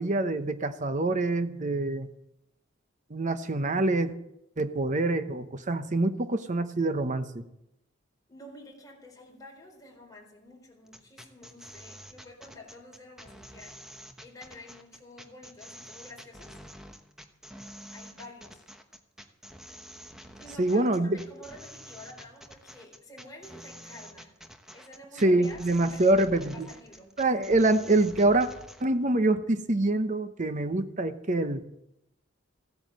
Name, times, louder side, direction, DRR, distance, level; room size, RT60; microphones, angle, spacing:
voice 1, 0.0-2.1 3.1-4.1 4.6-7.4 20.6-21.2 25.2-26.7 27.2-28.5 28.8-31.6, right 2 dB, 40° right, 10 dB, 0.9 m, -25 dB
voice 2, 8.3-13.7 14.2-16.6 17.9-18.7 20.4-24.3 24.7-26.1 26.5-27.1, left 1 dB, 20° left, -1 dB, 4.0 m, -49 dB
sound 1, 10.9-28.8, equal, 5° right, 1.1 m, -48 dB
15.5 x 9.3 x 7.6 m, 0.82 s
head